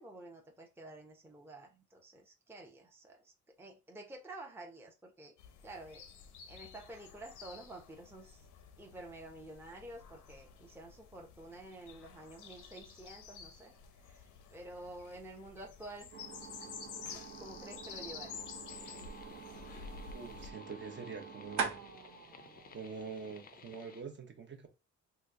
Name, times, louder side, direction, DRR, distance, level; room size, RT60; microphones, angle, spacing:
voice 1, 0.0-3.3 3.6-5.3 5.6-6.0 6.5-8.5 8.8-16.2 16.6-16.7 17.0-18.6, right 2 dB, 10° right, 0.7 m, -50 dB
sound 1, 5.4-20.5, left 6 dB, 85° left, 0.7 m, -51 dB
sound 2, 16.1-23.9, right 5 dB, 70° right, 0.9 m, -45 dB
sound 3, 18.7-24.0, left 6 dB, 30° left, 0.5 m, -57 dB
voice 2, 20.1-21.7 22.7-24.7, right 5 dB, 40° right, 0.8 m, -45 dB
2.9 x 2.2 x 3.6 m
cardioid pair, 90°, 30 cm